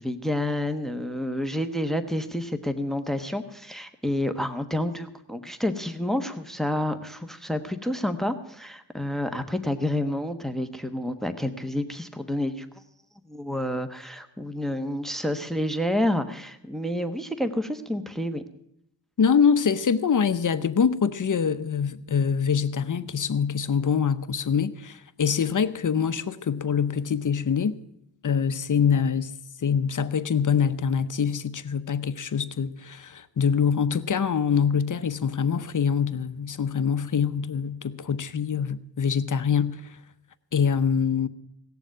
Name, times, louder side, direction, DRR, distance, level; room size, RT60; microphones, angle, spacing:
voice 1, 0.0-12.7 13.3-18.4, left 1 dB, ahead, 1.1 m, -29 dB
voice 2, 19.2-27.7 28.2-29.3 29.6-40.0 40.5-41.3, left 7 dB, 45° left, 0.8 m, -24 dB
18.0 x 7.1 x 9.0 m
wide cardioid pair, 95°, 43 cm